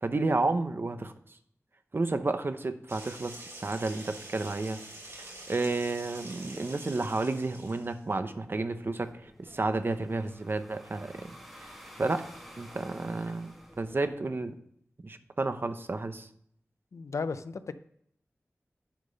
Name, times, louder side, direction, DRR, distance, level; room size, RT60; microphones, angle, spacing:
voice 1, 0.0-1.1 1.9-4.8 5.2-11.3 11.6-12.2 12.6-14.6 15.0-16.3, right 3 dB, 45° right, 9 dB, 0.8 m, -31 dB
sound 1, 2.9-8.0, right 1 dB, 70° right, 3.3 m, -46 dB
sound 2, 8.2-14.1, equal, ahead, 1.8 m, -51 dB
voice 2, 16.9-17.7, left 4 dB, 85° left, 12 dB, 0.5 m, -34 dB
10.5 x 5.3 x 5.4 m, 0.70 s
wide cardioid pair, 85°, 5 cm